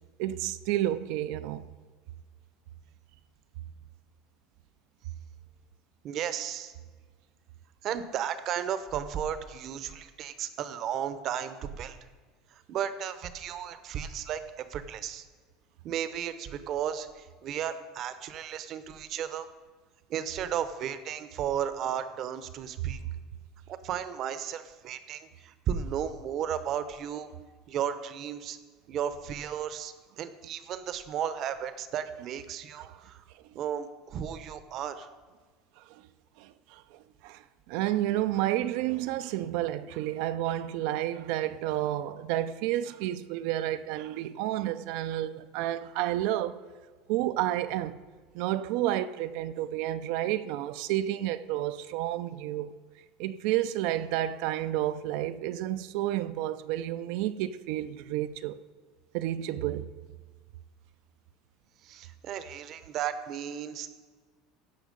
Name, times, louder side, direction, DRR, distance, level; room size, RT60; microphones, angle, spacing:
voice 1, 0.2-1.7 32.8-33.0 33.3-33.6 35.8-36.1 36.4-46.6 47.1-48.0 48.3-52.7 53.2-58.6 59.1-59.9, right 13 dB, 70° right, 0.5 m, -31 dB
voice 2, 6.0-6.7 7.8-12.0 12.5-15.3 15.8-19.5 20.1-23.0 23.7-27.3 27.7-28.6 28.9-33.2 33.5-35.1 61.8-63.9, right 9 dB, 45° right, 0.8 m, -34 dB
16.0 x 5.7 x 5.2 m
cardioid pair, 145°, 0 cm